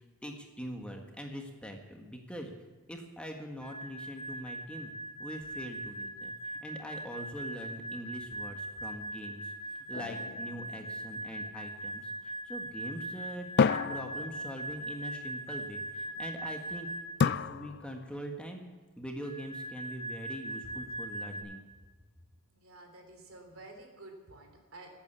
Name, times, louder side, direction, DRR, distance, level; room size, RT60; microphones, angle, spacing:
voice 1, 0.2-2.5 2.9-4.9 5.2-6.3 6.6-9.4 9.9-16.9 17.2-18.7 19.0-21.6, equal, 5° left, 2 dB, 1.5 m, -43 dB
sound 1, 3.6-17.3 19.2-21.4, right 1 dB, 35° right, 4.0 m, -40 dB
sound 2, 9.9-11.5 13.6-15.0 17.2-18.3, left 5 dB, 50° left, 0.4 m, -31 dB
voice 2, 22.5-25.0, right 2 dB, 70° right, 3 dB, 3.4 m, -51 dB
18.0 x 8.8 x 7.2 m, 1.4 s
head